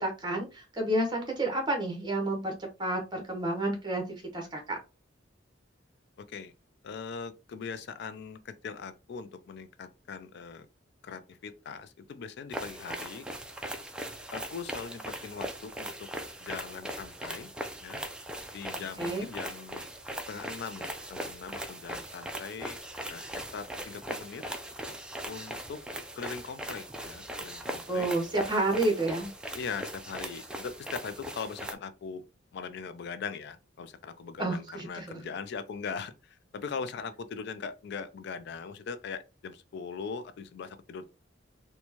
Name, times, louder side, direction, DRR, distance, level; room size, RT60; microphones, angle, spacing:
voice 1, 0.0-4.8 19.0-19.3 27.9-29.3 34.4-35.1, right 2 dB, 25° right, 1.1 m, -30 dB
voice 2, 6.2-6.5 6.8-10.7 11.0-13.3 14.3-15.9 16.4-17.5 17.8-18.0 18.5-19.9 20.3-22.8 23.1-24.4 25.3-25.8 26.2-28.1 29.6-32.2 32.5-41.1, left 5 dB, 60° left, 0.4 m, -40 dB
sound 1, 12.5-31.7, right 1 dB, 5° right, 0.4 m, -40 dB
4.3 x 2.2 x 2.9 m
head